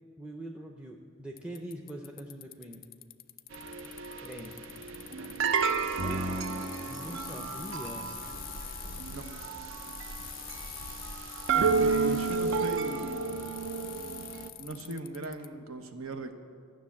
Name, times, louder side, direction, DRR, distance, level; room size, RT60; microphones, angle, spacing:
voice 1, 0.2-2.8 4.2-4.6 5.2-5.4 6.0-8.2, right 1 dB, 5° right, 1 dB, 0.6 m, -43 dB
Bicycle, 1.4-15.5, left 14 dB, 45° left, 0.4 m, -46 dB
sound 1, 3.5-14.5, right 4 dB, 65° right, 0.6 m, -32 dB
sound 2, 4.9-9.9, right 1 dB, 45° right, 0.9 m, -41 dB
voice 2, 11.5-13.2 14.6-16.4, right 2 dB, 80° right, 7 dB, 1.0 m, -38 dB
13.0 x 6.3 x 8.5 m, 2.2 s
head